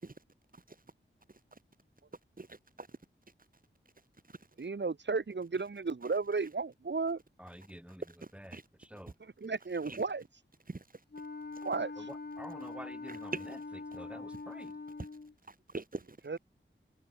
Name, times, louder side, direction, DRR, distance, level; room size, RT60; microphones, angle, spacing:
voice 1, 2.4-3.0 4.3-4.4 8.0-8.6 9.8-10.0 10.7-10.8 11.5-11.6 13.1-13.5 14.3-14.4 15.0-15.1 15.5-16.2, right 3 dB, 45° right, 5.4 m, -43 dB
voice 2, 4.6-7.2 9.2-10.2 11.6-11.9 16.3-16.4, right 4 dB, 60° right, 2.5 m, -34 dB
voice 3, 7.4-8.0 8.3-9.1 12.0-13.6 13.9-14.7, equal, 5° right, 5.0 m, -49 dB
Wind instrument woodwind instrument, 11.1-15.3, left 3 dB, 50° left, 5.2 m, -43 dB
wide cardioid pair, 85°, 21 cm